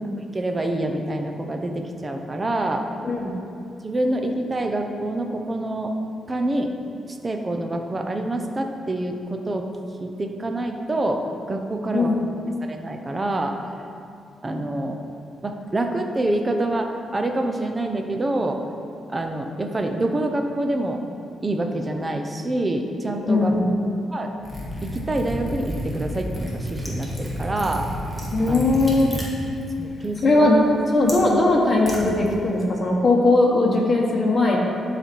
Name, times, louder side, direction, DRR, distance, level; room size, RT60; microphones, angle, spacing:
voice 1, 0.2-2.8 3.8-5.9 6.3-6.7 7.2-9.7 10.0-12.1 12.6-13.6 14.4-15.0 15.4-18.6 19.1-21.0 21.4-23.6 24.1-24.3 24.8-27.8 28.5-28.6 29.8-30.5, right 1 dB, 25° right, 4 dB, 0.7 m, -26 dB
voice 2, 23.2-23.7 28.3-29.1 30.2-30.6 30.9-34.6, left 2 dB, 30° left, -2 dB, 1.3 m, -19 dB
Liquid, 24.4-32.7, equal, ahead, 1.6 m, -32 dB
11.0 x 4.2 x 4.6 m, 2.5 s
cardioid pair, 120°, 0 cm